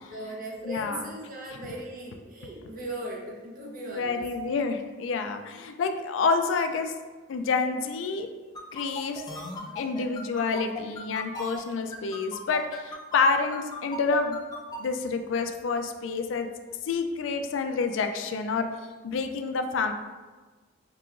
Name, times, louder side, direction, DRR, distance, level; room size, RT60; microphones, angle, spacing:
voice 1, 0.1-4.5, right 1 dB, 50° right, -2 dB, 0.7 m, -38 dB
voice 2, 0.7-1.1 3.9-6.9 7.3-8.3 8.7-9.2 9.8-14.4 14.8-16.5 16.8-18.7 19.0-19.9, left 4 dB, 85° left, 6 dB, 0.3 m, -28 dB
video game sounds zacka retro, 8.6-14.8, left 1 dB, 20° left, 0.5 m, -37 dB
4.7 x 2.9 x 2.4 m, 1.3 s
head